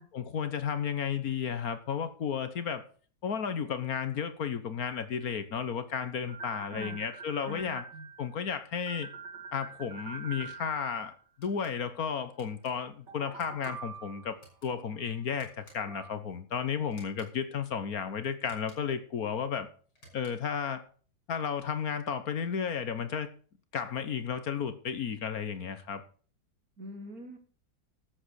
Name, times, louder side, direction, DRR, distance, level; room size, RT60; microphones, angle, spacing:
voice 1, 0.1-2.8 3.2-7.9 8.2-9.1 9.5-14.4 14.6-19.7 20.1-20.8 21.3-23.3 23.7-26.0, left 7 dB, 60° left, 11 dB, 1.5 m, -33 dB
sound 1, 6.3-8.5 8.9-11.2 13.1-14.5 15.9-16.1, right 5 dB, 90° right, 2.6 m, -45 dB
voice 2, 7.5-8.1 26.8-27.4, equal, 60° right, 8 dB, 2.3 m, -44 dB
sound 2, 11.4-11.8 12.4-12.7 13.4-13.7 14.4-14.7 15.4-16.0 16.9-17.3 18.4-19.0 19.9-20.5, equal, 80° left, 6.6 m, -58 dB
12.5 x 8.0 x 6.4 m, 0.42 s
omnidirectional pair, 1.8 m